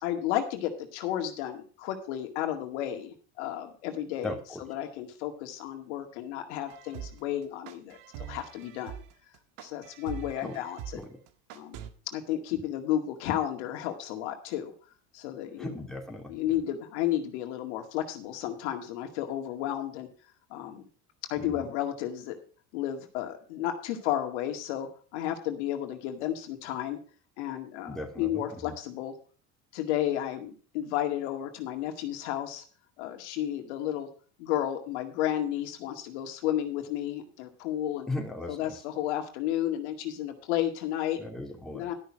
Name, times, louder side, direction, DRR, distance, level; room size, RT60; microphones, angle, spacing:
voice 1, 0.0-8.9 9.6-11.0 11.5-11.8 12.1-14.7 15.1-15.8 16.3-20.1 20.5-20.8 21.3-22.4 22.7-27.0 27.4-29.1 29.7-32.6 33.0-34.1 34.4-38.1 38.5-41.2 41.7-41.9, left 11 dB, 85° left, 5 dB, 2.1 m, -32 dB
voice 2, 4.2-4.6 10.4-10.6 10.9-11.2 15.6-16.3 21.4-21.7 27.9-28.7 38.1-38.6 41.2-41.9, left 2 dB, ahead, 0 dB, 2.9 m, -37 dB
sound 1, 6.7-11.9, right 9 dB, 70° right, 1.6 m, -43 dB
12.0 x 6.4 x 6.0 m, 0.40 s
supercardioid pair, 120°, 33 cm